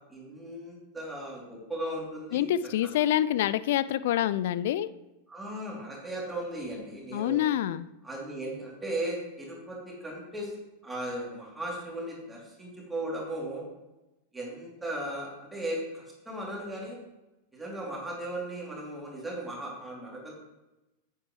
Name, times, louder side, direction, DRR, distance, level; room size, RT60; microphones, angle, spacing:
voice 1, 0.1-2.6 5.3-7.4 8.0-10.5 10.8-13.6 14.3-17.0 17.5-20.3, right 1 dB, 10° right, -4 dB, 3.2 m, -37 dB
voice 2, 2.3-4.9 7.1-7.9, left 12 dB, 55° left, 16 dB, 0.3 m, -26 dB
9.6 x 8.9 x 3.3 m, 1.0 s
figure-of-eight pair, 90°, 0 cm